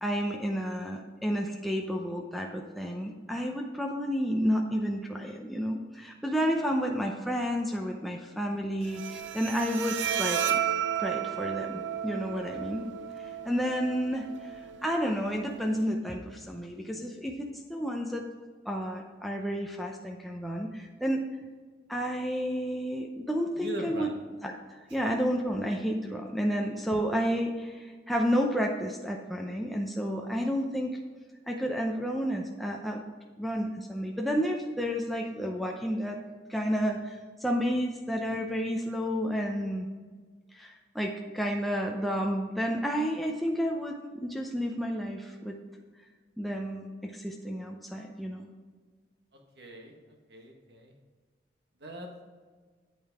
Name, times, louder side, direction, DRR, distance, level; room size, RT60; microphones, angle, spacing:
voice 1, 0.0-10.6 11.0-12.9 13.4-14.5 14.8-18.3 18.7-21.2 21.9-24.1 24.4-31.0 31.5-33.0 33.4-36.2 36.5-39.9 40.5-45.6 46.4-48.5, equal, ahead, 0 dB, 0.6 m, -31 dB
Bowed string instrument, 8.8-15.8, right 9 dB, 80° right, 0.6 m, -33 dB
voice 2, 23.6-24.1 49.6-49.9 50.3-50.9 51.8-52.2, right 1 dB, 60° right, 1 dB, 1.5 m, -40 dB
9.1 x 8.6 x 3.6 m, 1.5 s
head